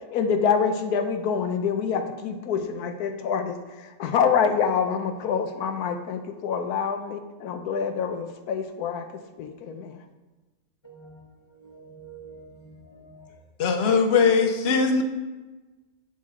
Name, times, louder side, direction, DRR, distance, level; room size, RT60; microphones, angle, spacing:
voice 1, 0.1-3.6 4.0-9.1 9.4-10.0, left 6 dB, 90° left, 1.2 m, -26 dB
voice 2, 10.8-11.3 11.5-13.3, right 4 dB, 25° left, 0.8 m, -47 dB
voice 3, 13.6-15.0, left 5 dB, 55° left, 0.8 m, -20 dB
7.7 x 5.6 x 3.7 m
omnidirectional pair, 1.6 m